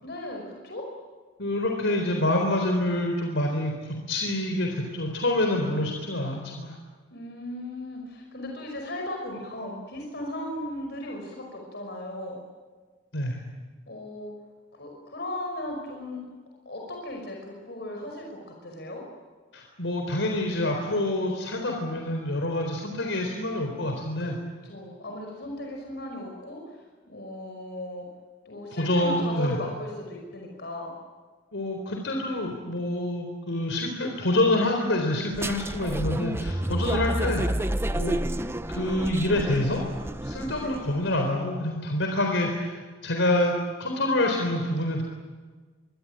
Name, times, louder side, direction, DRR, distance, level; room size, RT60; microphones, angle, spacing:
voice 1, 0.0-0.8 7.1-12.4 13.9-14.3 14.7-16.2 16.7-19.0 24.2-24.3 24.6-26.8 27.1-28.1 28.5-30.9 40.6-40.7, left 1 dB, 60° left, 1 dB, 5.5 m, -36 dB
voice 2, 1.4-6.8 13.1-13.4 19.5-24.4 28.7-29.6 31.5-37.4 37.9-38.2 38.7-39.8 40.2-42.8 43.0-43.5 43.8-45.0, left 1 dB, 85° left, 2 dB, 4.1 m, -27 dB
sound 1, 35.3-40.9, right 1 dB, 15° right, 0.7 m, -30 dB
25.0 x 24.0 x 8.9 m, 1.4 s
head